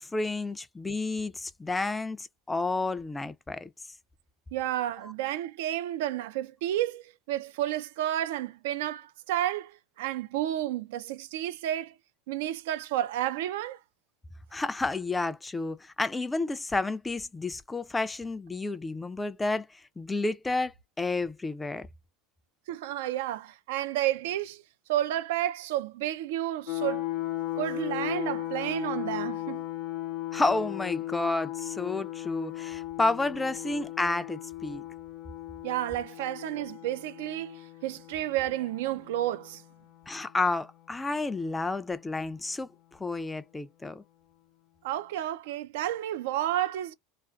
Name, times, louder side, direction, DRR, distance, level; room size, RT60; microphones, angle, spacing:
voice 1, 0.0-3.7 14.5-21.9 30.3-34.8 40.1-44.0, left 3 dB, 10° left, 0.3 m, -31 dB
voice 2, 4.5-12.0 12.3-13.8 22.7-24.6 24.9-27.0 27.6-29.6 35.6-39.6 44.8-46.9, right 13 dB, 80° right, 0.4 m, -31 dB
sound 1, 26.7-40.4, left 15 dB, 75° left, 0.7 m, -37 dB
2.4 x 2.4 x 2.3 m
supercardioid pair, 135°, 0 cm